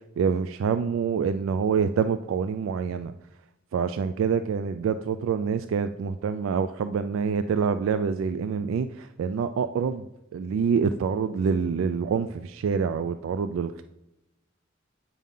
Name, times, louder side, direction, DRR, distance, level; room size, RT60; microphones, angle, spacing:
voice 1, 0.2-3.1 3.7-10.0 10.3-13.8, right 6 dB, 85° right, 11 dB, 0.3 m, -26 dB
8.5 x 5.4 x 3.7 m, 0.92 s
head